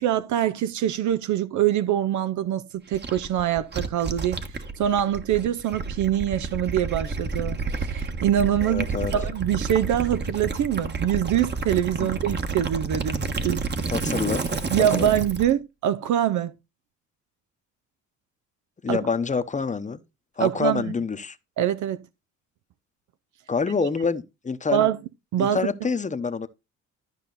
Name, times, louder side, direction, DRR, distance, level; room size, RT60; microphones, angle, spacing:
voice 1, 0.0-4.4 4.8-13.6 14.7-16.5 18.9-19.0 20.4-20.9 21.6-22.0 24.7-25.0 25.3-25.6, right 11 dB, 70° right, 0.6 m, -24 dB
Gurgling / Liquid, 2.9-15.5, right 4 dB, 35° right, 1.3 m, -30 dB
voice 2, 8.6-9.1 12.0-12.1 13.9-14.4 14.8-15.1 18.8-20.0 20.4-21.4 23.5-24.9 25.4-26.5, left 5 dB, 25° left, 0.9 m, -27 dB
12.5 x 5.4 x 4.0 m
cardioid pair, 90°, 30 cm